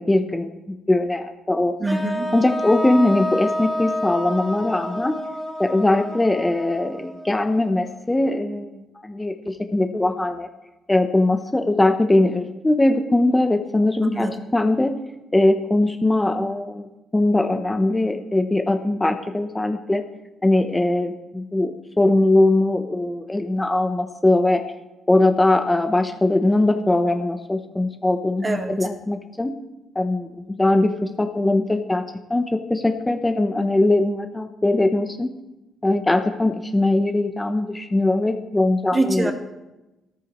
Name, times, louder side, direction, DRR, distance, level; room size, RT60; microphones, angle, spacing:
voice 1, 0.0-1.7 2.3-5.2 5.6-10.5 10.9-15.0 15.3-20.0 20.4-21.7 22.0-24.6 25.1-29.5 29.9-32.0 32.3-35.3 35.8-39.3, left 2 dB, 15° left, 6 dB, 0.9 m, -21 dB
voice 2, 1.8-2.3 14.0-14.3 28.4-28.9 38.9-39.3, right 2 dB, 30° right, 4 dB, 1.9 m, -24 dB
sound 1, 1.9-7.9, equal, ahead, 3.0 m, -29 dB
14.0 x 14.0 x 3.2 m, 1.0 s
cardioid pair, 90°, 0 cm